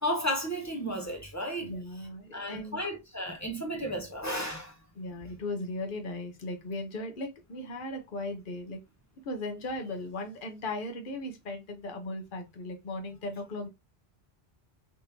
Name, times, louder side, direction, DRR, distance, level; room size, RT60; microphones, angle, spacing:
voice 1, 0.0-1.7 2.3-4.7, equal, 15° left, 0.8 m, -33 dB
voice 2, 1.6-2.8 5.0-8.8 9.2-13.7, left 2 dB, 55° left, 0.9 m, -37 dB
3.5 x 2.7 x 2.8 m
omnidirectional pair, 1.1 m